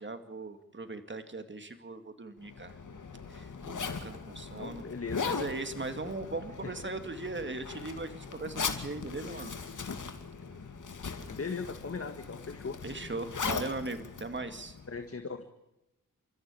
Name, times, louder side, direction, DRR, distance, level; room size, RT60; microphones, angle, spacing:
voice 1, 0.0-2.7 3.3-3.5 3.8-4.9 5.2-9.5 12.8-14.8, right 3 dB, 35° right, 8 dB, 2.4 m, -39 dB
Zipper (clothing), 2.4-15.1, left 5 dB, 70° left, 2.6 m, -39 dB
voice 2, 4.6-5.3 6.6-6.7 11.3-12.8 14.9-15.4, left 4 dB, 45° left, 7 dB, 1.8 m, -38 dB
29.5 x 14.0 x 8.4 m, 0.95 s
cardioid pair, 70°, 32 cm